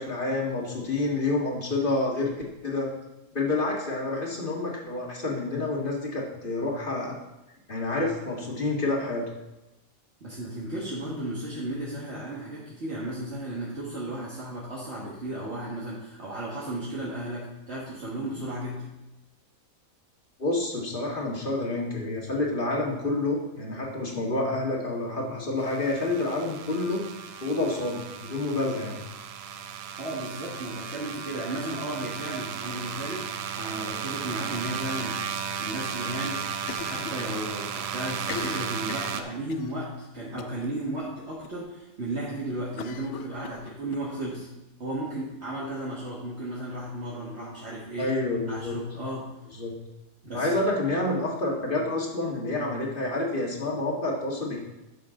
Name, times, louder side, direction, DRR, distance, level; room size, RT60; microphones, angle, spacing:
voice 1, 0.0-2.3 2.6-2.9 3.3-7.2 7.7-9.2 20.4-27.0 27.4-29.0 48.0-48.8 49.5-49.7 50.3-54.6, left 2 dB, 40° left, -2 dB, 2.0 m, -28 dB
voice 2, 10.2-18.9 30.0-35.2 35.6-36.5 36.8-44.5 44.8-48.1 48.5-49.3 50.2-50.5, right 1 dB, 50° right, -6 dB, 1.9 m, -34 dB
sound 1, 25.6-39.2, right 7 dB, 90° right, 1.1 m, -35 dB
Cough, 36.6-37.4 37.7-37.8 38.2-39.7 40.4-40.7 41.0-41.1 41.4-41.5 42.8-44.0, left 7 dB, 65° left, 0.8 m, -39 dB
11.5 x 6.8 x 3.8 m, 0.97 s
omnidirectional pair, 1.5 m